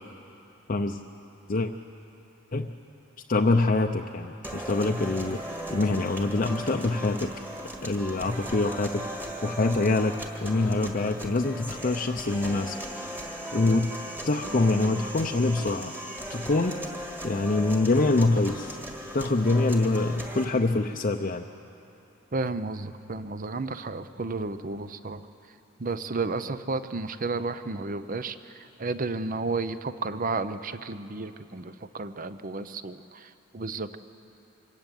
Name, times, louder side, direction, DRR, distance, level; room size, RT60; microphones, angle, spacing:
voice 1, 0.7-1.0 1.5-1.7 2.5-2.7 3.3-7.3 7.8-10.1 10.4-12.8 13.5-13.9 14.3-15.9 16.3-16.8 17.2-18.8 19.1-21.5, left 2 dB, 40° left, 3 dB, 0.6 m, -25 dB
sound 1, 4.4-20.4, equal, 10° right, 1.8 m, -37 dB
voice 2, 22.3-25.2 25.8-34.0, right 3 dB, 40° right, 12 dB, 0.7 m, -32 dB
25.0 x 14.5 x 9.1 m, 3.0 s
head